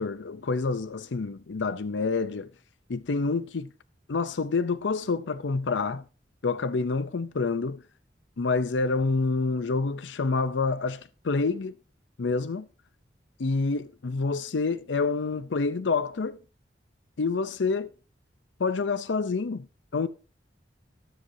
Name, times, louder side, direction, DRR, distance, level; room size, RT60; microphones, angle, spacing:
voice 1, 0.0-2.5 2.9-3.7 4.1-6.0 6.4-7.8 8.4-11.8 12.2-12.7 13.4-16.4 17.2-17.9 18.6-19.7 19.9-20.1, left 4 dB, 85° left, 0.6 m, -27 dB
13.0 x 13.0 x 2.7 m
head